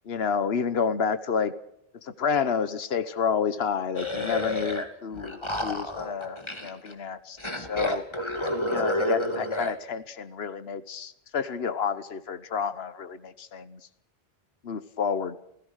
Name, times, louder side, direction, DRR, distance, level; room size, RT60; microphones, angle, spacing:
voice 1, 0.1-1.5 2.0-8.0 8.7-13.8 14.6-15.4, left 6 dB, 80° left, 13 dB, 1.3 m, -30 dB
sound 1, 3.9-4.8 5.1-6.9 7.4-9.8, left 1 dB, 25° left, 2.5 m, -30 dB
29.5 x 16.5 x 6.5 m, 0.75 s
omnidirectional pair, 1.0 m